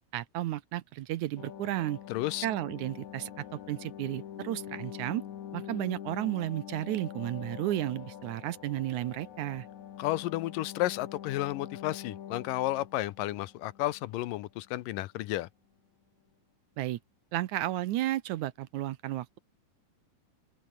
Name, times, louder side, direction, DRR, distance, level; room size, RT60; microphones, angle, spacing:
voice 1, 0.1-2.0 2.4-5.2 5.5-9.7 16.8-17.0 17.3-19.4, right 15 dB, 70° right, 2.0 m, -33 dB
sound 1, 1.4-14.4 14.7-14.8, left 10 dB, 60° left, 3.0 m, -45 dB
voice 2, 2.1-2.5 10.0-15.5, left 16 dB, 85° left, 2.5 m, -32 dB
open air
omnidirectional pair, 3.8 m